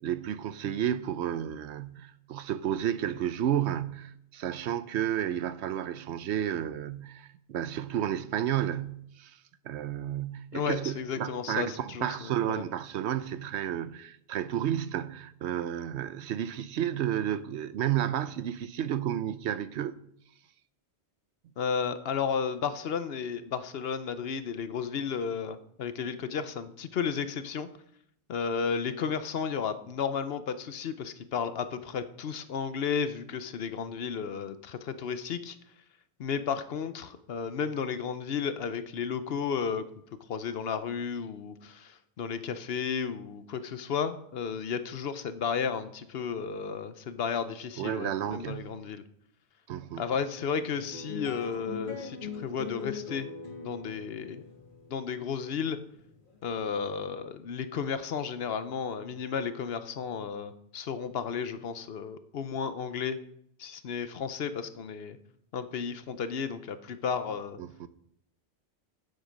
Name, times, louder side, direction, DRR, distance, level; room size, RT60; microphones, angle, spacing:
voice 1, 0.0-9.4 9.6-20.0 47.8-48.8 49.7-50.0 67.6-67.9, right 10 dB, 80° right, 0.9 m, -32 dB
voice 2, 10.5-12.7 21.6-27.7 28.3-35.6 36.2-39.8 40.3-49.0 50.0-53.3 53.6-54.4 54.9-55.8 56.4-63.2 63.6-65.2 65.5-67.6, left 6 dB, 65° left, 0.9 m, -33 dB
sound 1, 50.4-57.0, left 5 dB, 50° left, 2.0 m, -41 dB
8.9 x 7.8 x 5.2 m
omnidirectional pair, 1.1 m